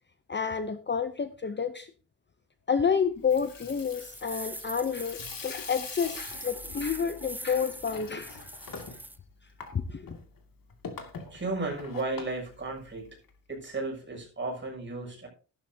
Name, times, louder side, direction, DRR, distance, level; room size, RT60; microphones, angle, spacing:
voice 1, 0.3-1.9 2.7-8.5 9.7-10.1, left 6 dB, 25° left, 10 dB, 0.8 m, -29 dB
Water tap faucet / Sink (filling or washing), 3.1-13.3, left 5 dB, 55° left, 2.5 m, -45 dB
sound 1, 3.6-9.2, right 1 dB, 5° right, 0.8 m, -43 dB
voice 2, 11.3-13.1 13.5-15.3, right 2 dB, 25° right, 0 dB, 6.9 m, -34 dB
14.5 x 12.0 x 2.8 m, 0.36 s
wide cardioid pair, 145°, 41 cm